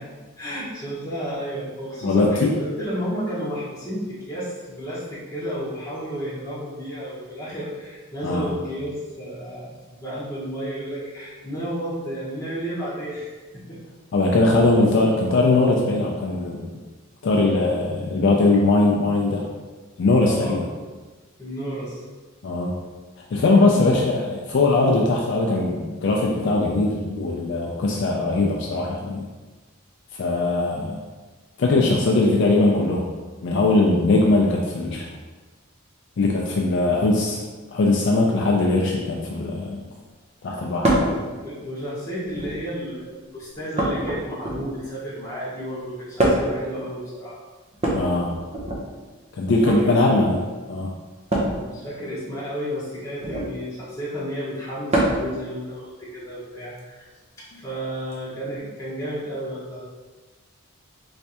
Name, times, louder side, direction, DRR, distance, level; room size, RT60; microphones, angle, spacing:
voice 1, 0.4-9.7 10.0-13.3 13.7-13.8 20.1-21.0 21.4-22.0 23.5-24.0 41.1-47.4 49.8-49.9 51.6-57.1 57.4-59.8, equal, 15° left, -10 dB, 1.3 m, -32 dB
voice 2, 2.0-2.5 8.2-8.5 14.1-16.7 17.2-19.4 20.0-20.6 22.4-22.7 23.3-29.3 30.2-31.0 31.6-33.0 33.4-35.1 36.2-37.4 37.7-39.9 40.4-41.1 47.9-48.3 49.4-50.4 50.7-50.9, left 2 dB, 55° left, -1 dB, 0.4 m, -20 dB
sound 1, 40.8-41.2 42.2-42.7 43.8-44.9 46.2-46.6 47.7-48.8 49.5-49.8 51.3-51.6 53.2-53.5 54.9-55.3 56.8-56.9 58.1-58.2, right 1 dB, 30° right, 0.6 m, -23 dB
3.3 x 3.2 x 2.8 m, 1.3 s
head